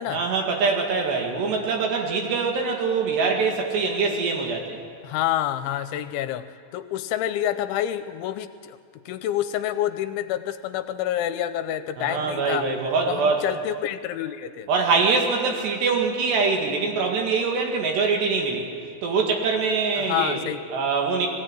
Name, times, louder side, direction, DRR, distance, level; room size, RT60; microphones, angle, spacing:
voice 1, 0.1-4.8 12.0-13.4 14.7-18.7 19.0-20.4 20.7-21.3, right 4 dB, 65° right, 1 dB, 4.0 m, -23 dB
voice 2, 5.0-6.5 6.7-8.8 9.1-12.7 13.0-14.7 20.0-20.6, left 11 dB, 80° left, 11 dB, 3.0 m, -28 dB
19.5 x 16.5 x 9.2 m, 2.2 s
omnidirectional pair, 5.5 m